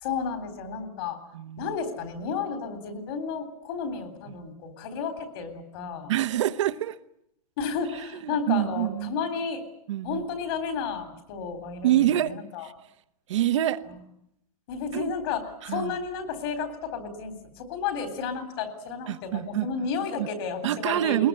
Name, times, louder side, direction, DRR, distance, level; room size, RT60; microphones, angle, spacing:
voice 1, 0.0-1.2 1.6-6.1 7.6-9.6 10.0-12.7 14.7-15.4 15.7-21.3, left 5 dB, 40° left, 9 dB, 3.7 m, -32 dB
voice 2, 1.3-1.8 4.3-4.4 6.1-7.0 7.9-9.1 9.9-10.2 11.8-12.7 13.3-13.8 14.9-15.1 15.6-16.0 19.1-19.9 20.2-20.3 20.6-21.3, right 12 dB, 50° right, 13 dB, 1.1 m, -26 dB
21.0 x 20.5 x 9.7 m, 0.78 s
hypercardioid pair, 170°, 19 cm